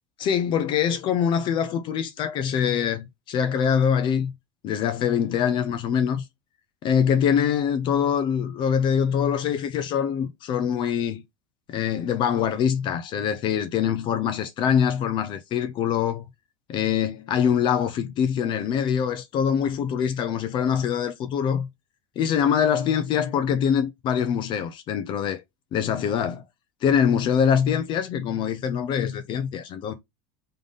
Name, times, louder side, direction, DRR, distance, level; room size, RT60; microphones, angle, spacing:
voice 1, 0.2-4.3 4.6-6.2 6.8-11.2 11.7-16.3 16.7-21.7 22.2-25.4 25.7-26.4 26.8-29.9, left 8 dB, 35° left, 0.6 m, -24 dB
3.9 x 3.8 x 3.5 m
supercardioid pair, 155°, 14 cm